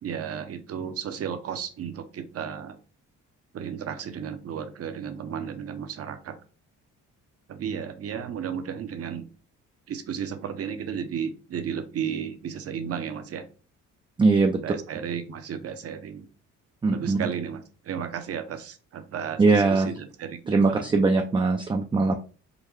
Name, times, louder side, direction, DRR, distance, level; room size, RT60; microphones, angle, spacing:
voice 1, 0.0-2.8 3.5-6.4 7.5-9.3 9.9-13.5 14.6-16.3 16.9-21.0, right 8 dB, 50° right, 8 dB, 0.6 m, -34 dB
voice 2, 14.2-14.6 16.8-17.2 19.4-19.9 20.5-22.2, right 3 dB, 15° right, 4 dB, 0.3 m, -21 dB
3.7 x 2.2 x 3.1 m, 0.37 s
cardioid pair, 90°, 30 cm